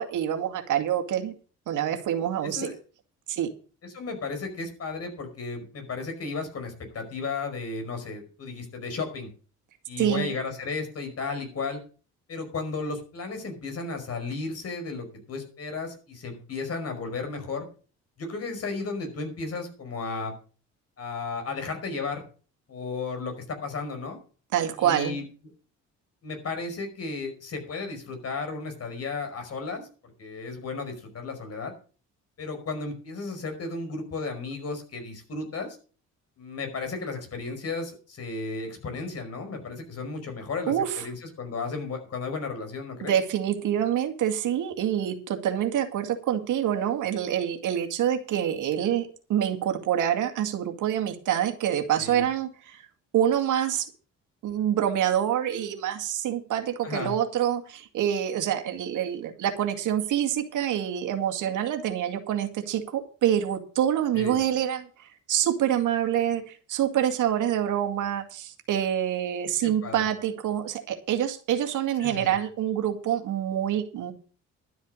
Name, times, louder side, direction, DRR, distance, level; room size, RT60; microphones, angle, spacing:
voice 1, 0.0-1.3 1.7-2.7 3.3-3.5 10.0-10.3 24.5-25.2 40.7-41.0 43.0-52.8 53.1-53.9 54.4-74.1, right 10 dB, 80° right, 6 dB, 2.2 m, -26 dB
voice 2, 2.4-2.8 3.8-9.3 9.9-11.8 12.3-17.7 18.2-20.3 21.0-22.2 22.7-24.2 24.8-25.2 26.2-31.7 32.4-35.8 36.4-43.1 52.0-52.2 56.8-57.1 64.1-64.4 69.6-70.0 72.0-72.3, left 4 dB, 55° left, 6 dB, 5.2 m, -34 dB
12.0 x 8.2 x 6.4 m, 0.39 s
cardioid pair, 90°, 30 cm